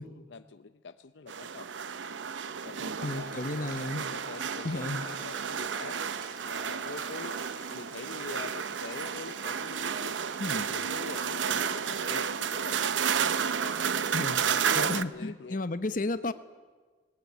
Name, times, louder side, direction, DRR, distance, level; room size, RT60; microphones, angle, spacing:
voice 1, 0.0-1.7 2.6-6.0 6.5-7.4 7.7-10.2 10.7-14.1 14.6-15.6, left 4 dB, 70° left, 11 dB, 0.6 m, -45 dB
sound 1, 1.3-15.0, right 7 dB, 80° right, 0.7 m, -32 dB
voice 2, 3.0-4.0 4.6-5.0 10.4-10.7 14.1-14.4 14.7-16.3, left 2 dB, 45° left, 11 dB, 1.0 m, -33 dB
Boiling, 3.0-13.3, right 2 dB, 45° right, 4.9 m, -49 dB
19.0 x 19.0 x 9.4 m, 1.4 s
head